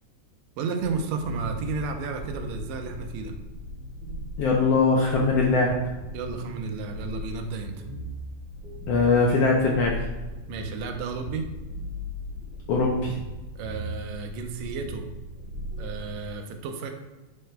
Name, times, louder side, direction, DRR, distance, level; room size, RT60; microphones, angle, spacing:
voice 1, 0.6-3.4 6.1-7.8 10.5-11.5 13.6-15.1 15.8-16.9, right 4 dB, 80° right, 4 dB, 1.9 m, -32 dB
sound 1, 0.8-16.3, equal, 35° right, 2.5 m, -38 dB
voice 2, 4.4-5.7 8.9-10.0 12.7-13.2, left 3 dB, 75° left, -1 dB, 1.5 m, -21 dB
6.6 x 6.5 x 2.2 m, 1.1 s
omnidirectional pair, 3.4 m